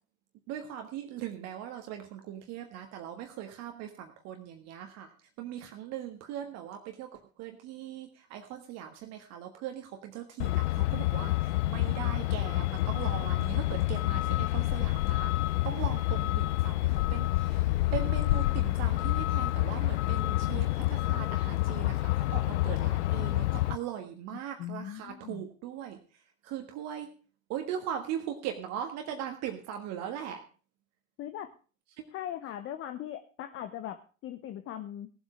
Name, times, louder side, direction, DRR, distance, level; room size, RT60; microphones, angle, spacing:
voice 1, 0.5-5.1 5.4-26.0 26.4-27.1 27.5-30.4 32.0-32.1, right 10 dB, 40° right, 5 dB, 1.6 m, -40 dB
Truck, 10.4-23.8, left 17 dB, 60° left, 0.6 m, -28 dB
voice 2, 24.3-25.4 31.2-31.5 32.1-35.1, left 11 dB, 30° left, 10 dB, 1.0 m, -40 dB
17.5 x 7.9 x 5.0 m, 0.37 s
figure-of-eight pair, 80°, 39 cm